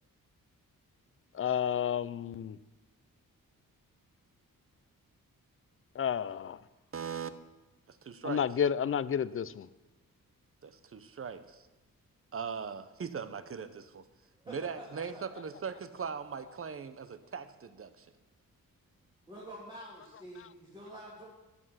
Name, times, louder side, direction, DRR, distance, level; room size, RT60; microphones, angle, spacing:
voice 1, 1.4-2.6 6.0-6.6 8.2-9.7, left 8 dB, 40° left, 17 dB, 0.4 m, -31 dB
voice 2, 6.9-7.3 7.9-8.4 10.6-11.7 12.3-14.1 14.5-18.1, right 6 dB, 40° right, 12 dB, 0.8 m, -40 dB
voice 3, 14.4-15.4 19.3-21.3, right 1 dB, 10° right, -6 dB, 2.1 m, -48 dB
12.5 x 8.1 x 5.8 m, 1.1 s
wide cardioid pair, 105°, 35 cm